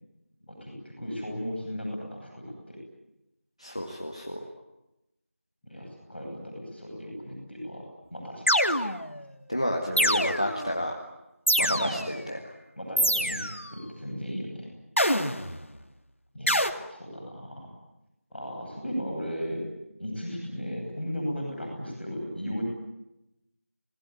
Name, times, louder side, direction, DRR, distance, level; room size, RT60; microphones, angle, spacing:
voice 1, 0.4-2.8 5.6-7.8 8.1-8.4 11.6-12.0 12.7-14.7 16.3-17.7 18.3-19.6 20.0-22.6, equal, ahead, -23 dB, 5.9 m, -36 dB
voice 2, 3.6-4.4 9.5-10.9 11.6-12.5, equal, 25° left, 2 dB, 1.9 m, -30 dB
sound 1, 8.5-9.2 10.0-10.7 11.5-12.2 13.0-13.7 15.0-15.6 16.5-16.7, equal, 60° left, 2.6 m, -25 dB
29.5 x 20.5 x 9.6 m, 0.91 s
figure-of-eight pair, 180°, 8 cm